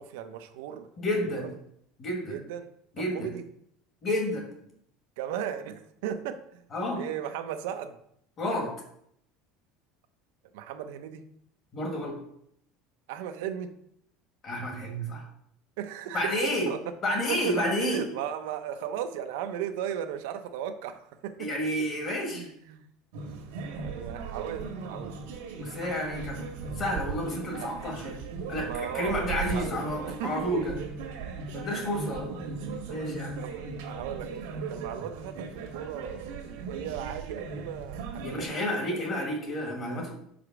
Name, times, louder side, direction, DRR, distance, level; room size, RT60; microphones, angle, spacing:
voice 1, 0.0-0.9 1.3-1.5 2.3-2.7 3.0-3.4 5.2-6.6 7.0-8.0 10.5-11.2 13.1-13.7 15.8-16.9 17.3-21.5 22.3-22.9 23.7-25.2 27.6-27.7 28.6-29.7 30.0-30.5 32.6-32.9 33.4-33.6 33.9-39.0, right 9 dB, 70° right, 8 dB, 0.6 m, -36 dB
voice 2, 1.0-1.5 2.0-2.3 3.0-3.3 4.0-4.4 6.7-7.0 8.4-8.7 11.7-12.2 14.4-15.2 16.1-16.7 17.0-18.1 21.4-22.5 25.6-26.4 26.8-28.1 28.5-30.7 31.5-32.4 32.9-33.4 38.2-40.1, left 1 dB, 25° left, 1 dB, 1.6 m, -30 dB
sound 1, 23.1-38.4, right 5 dB, 85° right, 1.5 m, -37 dB
5.0 x 4.9 x 6.0 m, 0.72 s
cardioid pair, 180°, 0 cm